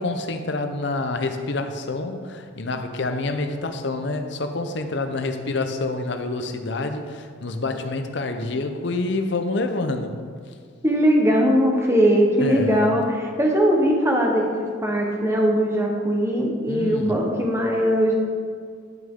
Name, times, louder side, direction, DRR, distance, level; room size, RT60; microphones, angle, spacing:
voice 1, 0.0-10.2 10.5-10.6 12.4-12.9 16.7-17.2, left 2 dB, 60° left, 7 dB, 0.7 m, -27 dB
voice 2, 10.8-14.5 14.8-18.2, equal, 15° right, 0 dB, 1.0 m, -20 dB
10.5 x 6.3 x 3.7 m, 2.1 s
head